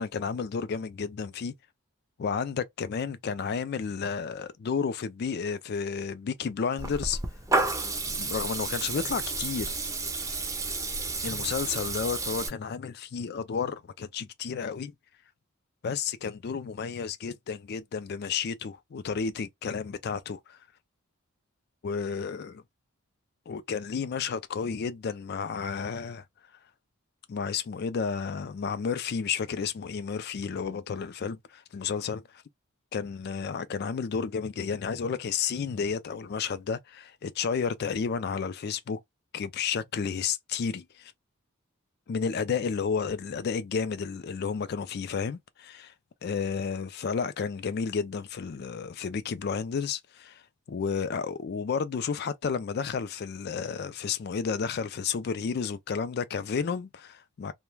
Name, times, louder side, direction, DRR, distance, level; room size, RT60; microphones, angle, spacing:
voice 1, 0.0-1.5 2.2-7.2 8.2-9.7 11.2-14.9 15.8-20.6 21.8-22.6 23.5-26.2 27.3-32.2 32.9-39.0 39.3-41.1 42.1-45.9 46.2-50.4 50.7-57.5, left 6 dB, 45° left, 0.3 m, -32 dB
Water tap faucet / Liquid, 6.8-12.5, right 3 dB, 15° right, 0.5 m, -31 dB
2.3 x 2.1 x 3.1 m
head